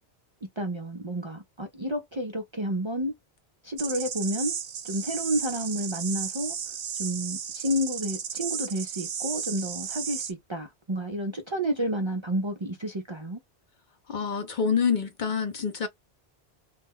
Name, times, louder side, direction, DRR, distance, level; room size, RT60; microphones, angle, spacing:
voice 1, 0.6-3.1 3.6-4.5 4.8-6.6 7.0-13.4, right 1 dB, 40° right, 0.4 m, -30 dB
sound 1, 3.8-10.3, right 7 dB, 65° right, 0.8 m, -34 dB
voice 2, 14.1-15.9, left 6 dB, 55° left, 0.6 m, -27 dB
2.3 x 2.1 x 3.5 m
omnidirectional pair, 1.1 m